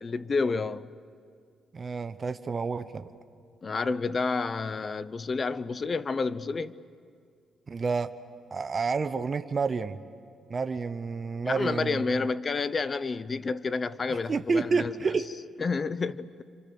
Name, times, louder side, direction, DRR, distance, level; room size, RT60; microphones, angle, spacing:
voice 1, 0.0-0.9 3.6-6.8 11.4-14.9 15.6-16.4, left 4 dB, 35° left, 0.7 m, -29 dB
voice 2, 1.7-3.1 7.7-8.1 8.5-10.0 10.5-12.1 14.3-15.2, right 4 dB, 35° right, 0.8 m, -29 dB
28.5 x 26.0 x 6.8 m
cardioid pair, 95°, 0 cm